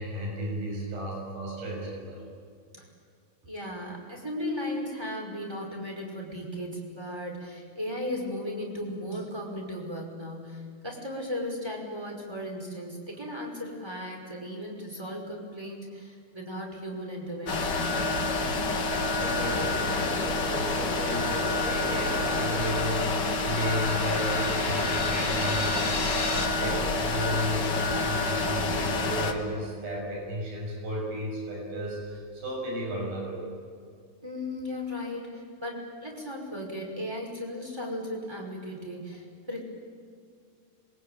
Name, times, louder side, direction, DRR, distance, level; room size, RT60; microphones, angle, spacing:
voice 1, 0.0-2.2 19.2-25.9 26.3-33.5, equal, 60° right, -1 dB, 8.6 m, -34 dB
voice 2, 3.4-18.0 34.2-39.6, left 1 dB, 5° right, 0 dB, 5.0 m, -36 dB
sound 1, 17.5-29.3, left 3 dB, 55° left, 1.2 m, -28 dB
sound 2, 19.2-26.4, left 2 dB, 20° left, 3.2 m, -37 dB
26.5 x 23.0 x 9.1 m, 2.2 s
omnidirectional pair, 4.7 m